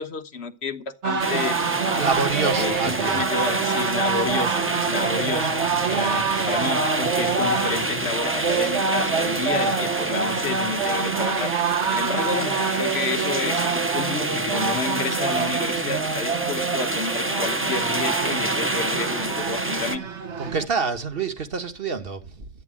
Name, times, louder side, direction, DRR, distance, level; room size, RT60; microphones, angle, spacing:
voice 1, 0.0-2.0 2.6-11.5 11.9-20.0, left 4 dB, 60° left, 1.3 m, -30 dB
sound 1, 1.0-20.7, right 5 dB, 70° right, 1.5 m, -26 dB
sound 2, 1.2-20.0, right 2 dB, 15° right, 0.7 m, -28 dB
voice 2, 2.0-3.3 5.1-5.2 5.8-6.2 19.7-19.8 20.4-22.5, right 4 dB, 50° right, 1.5 m, -28 dB
12.5 x 9.2 x 7.4 m
omnidirectional pair, 1.2 m